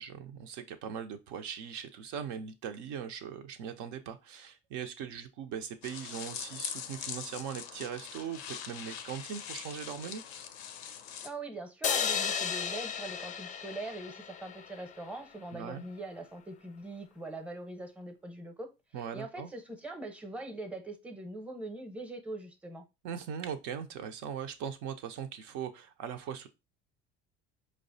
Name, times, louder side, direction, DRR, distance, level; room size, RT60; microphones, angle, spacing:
voice 1, 0.0-10.2 15.5-15.8 18.9-19.5 23.0-26.5, right 8 dB, 65° right, 0.5 m, -40 dB
sound 1, 5.8-11.3, left 8 dB, 90° left, 0.5 m, -42 dB
voice 2, 11.2-18.7 19.1-22.8, right 2 dB, 5° right, 0.7 m, -42 dB
sound 2, 11.8-15.1, left 7 dB, 25° left, 0.3 m, -34 dB
4.6 x 2.1 x 2.6 m
hypercardioid pair, 70°, 31 cm